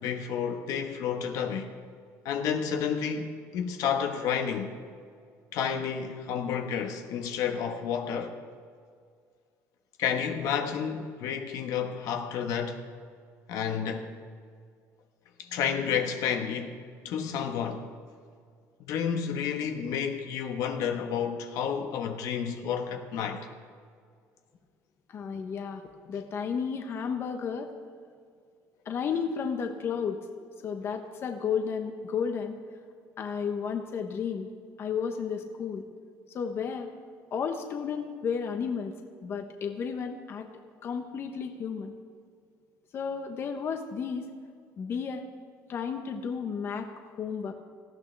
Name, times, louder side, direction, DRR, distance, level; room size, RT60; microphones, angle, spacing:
voice 1, 0.0-1.7 2.2-4.8 5.5-8.3 10.0-12.8 13.5-14.1 15.4-16.8 17.0-17.9 18.8-23.5, left 7 dB, 70° left, 1.2 m, -30 dB
voice 2, 25.1-27.7 28.8-30.2 30.6-32.6 33.2-34.5 34.8-35.8 36.3-36.9 37.3-38.9 39.2-40.5 40.8-41.9 42.9-44.2 44.8-45.2 45.7-46.9 47.2-47.5, left 6 dB, 40° left, 1.0 m, -32 dB
18.5 x 14.0 x 3.4 m
cardioid pair, 135°, 6 cm